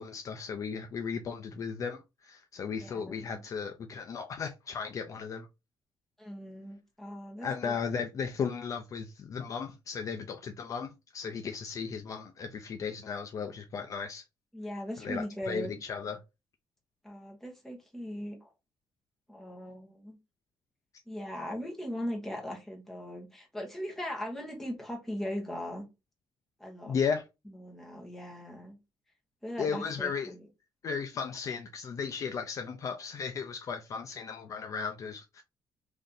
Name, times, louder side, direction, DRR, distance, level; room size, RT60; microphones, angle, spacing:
voice 1, 0.0-5.5 7.4-14.2 15.0-16.2 26.9-27.2 29.6-30.3 30.8-35.4, left 6 dB, 40° left, 0.4 m, -35 dB
voice 2, 2.8-3.4 6.2-7.7 14.5-15.7 17.0-18.5 19.3-20.2 21.1-25.9 26.6-26.9 27.5-28.7 29.4-30.4, equal, 5° left, 1.2 m, -39 dB
3.1 x 2.7 x 3.8 m
cardioid pair, 160°, 8 cm